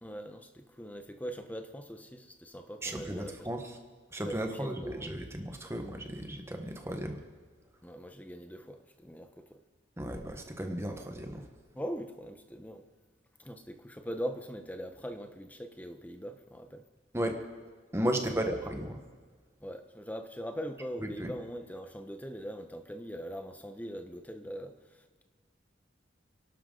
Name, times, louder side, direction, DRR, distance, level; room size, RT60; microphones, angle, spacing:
voice 1, 0.0-3.5 4.3-5.2 7.8-9.6 11.7-12.9 13.4-16.8 18.5-18.6 19.6-25.2, equal, 10° left, 7 dB, 1.0 m, -41 dB
voice 2, 2.8-3.7 4.1-7.2 10.0-11.5 17.1-17.4 17.9-19.0 21.0-21.3, right 1 dB, 15° right, 4 dB, 1.3 m, -34 dB
29.0 x 12.0 x 3.9 m, 1.5 s
head